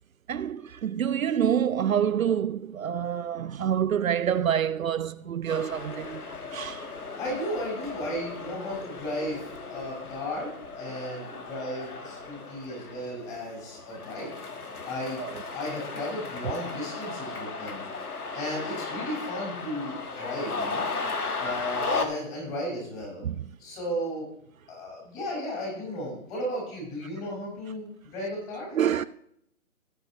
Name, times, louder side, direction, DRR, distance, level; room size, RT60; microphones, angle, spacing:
voice 1, 0.3-6.2 6.5-6.8 15.2-15.3 23.2-23.4 28.7-29.0, right 9 dB, 65° right, 0.5 m, -27 dB
sound 1, 5.5-22.0, left 4 dB, 85° left, 1.7 m, -36 dB
voice 2, 7.2-14.3 14.9-15.2 15.5-17.8 18.3-20.8 21.4-23.2 23.6-24.3 24.7-28.8, equal, 15° left, 5.3 m, -34 dB
17.0 x 8.8 x 3.1 m
figure-of-eight pair, 150°, 44 cm